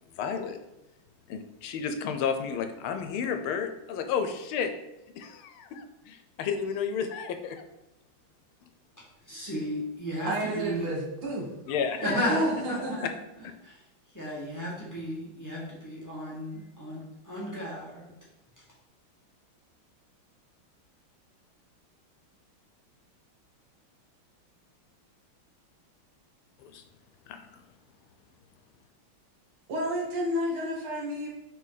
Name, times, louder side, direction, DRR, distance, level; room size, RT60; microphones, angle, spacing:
voice 1, 0.1-0.6 1.3-4.7 5.2-7.6 11.7-12.3 26.6-26.8 27.3-27.6, left 7 dB, 85° left, 7 dB, 1.5 m, -32 dB
voice 2, 9.0-10.9 12.0-13.0 13.4-13.8 14.1-18.1, equal, 10° left, -7 dB, 1.7 m, -33 dB
voice 3, 10.3-11.5 12.2-12.3 12.6-13.1 29.7-31.3, equal, 85° right, -3 dB, 2.7 m, -31 dB
5.5 x 5.0 x 4.0 m, 0.91 s
omnidirectional pair, 2.3 m